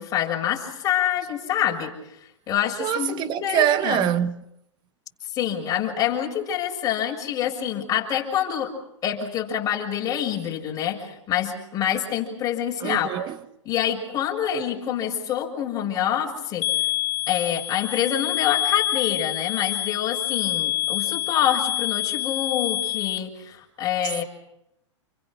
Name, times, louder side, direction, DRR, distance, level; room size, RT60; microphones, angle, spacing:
voice 1, 0.0-1.9 2.5-4.1 5.3-8.7 9.0-13.1 13.6-16.7 17.3-24.2, left 10 dB, 25° left, 6.8 m, -26 dB
voice 2, 2.8-4.4 12.8-13.4, right 10 dB, 30° right, 1.3 m, -24 dB
sound 1, 16.6-23.2, left 16 dB, 50° left, 1.0 m, -26 dB
28.5 x 24.5 x 6.3 m
hypercardioid pair, 140°, 16 cm